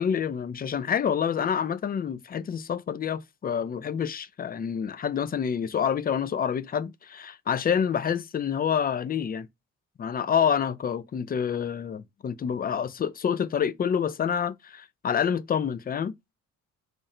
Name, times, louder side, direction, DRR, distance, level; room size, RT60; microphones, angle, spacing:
voice 1, 0.0-9.5 10.0-16.3, left 8 dB, 30° left, 0.4 m, -27 dB
3.7 x 2.1 x 4.1 m
cardioid pair, 90°, 30 cm